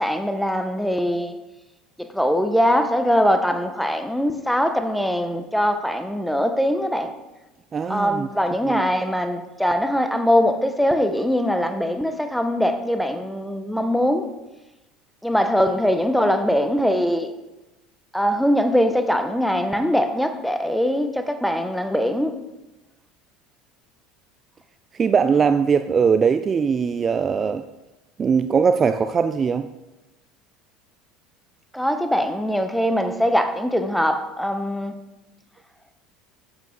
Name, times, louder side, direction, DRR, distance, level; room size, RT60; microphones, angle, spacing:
voice 1, 0.0-1.4 2.0-7.1 7.9-14.3 15.2-17.3 18.1-22.4 31.7-34.9, equal, ahead, 0.8 m, -22 dB
voice 2, 7.7-8.3 8.6-8.8 25.0-27.7 28.2-29.7, right 6 dB, 25° right, 0.3 m, -20 dB
11.0 x 7.3 x 3.8 m
supercardioid pair, 130°, 0 cm